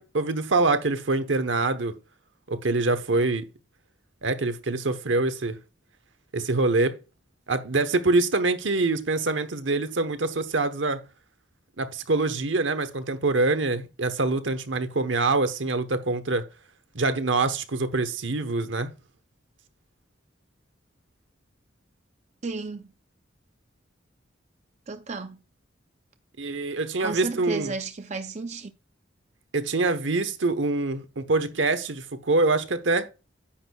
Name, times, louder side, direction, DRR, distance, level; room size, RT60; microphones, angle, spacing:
voice 1, 0.0-1.9 2.5-3.5 4.2-5.6 6.3-7.0 7.5-11.0 11.8-16.4 16.9-18.9 26.4-27.7 29.5-33.1, right 3 dB, 80° right, 1.0 m, -25 dB
voice 2, 22.4-22.9 24.9-25.4 27.0-28.7, right 3 dB, 35° right, 0.5 m, -33 dB
9.9 x 8.1 x 2.3 m
head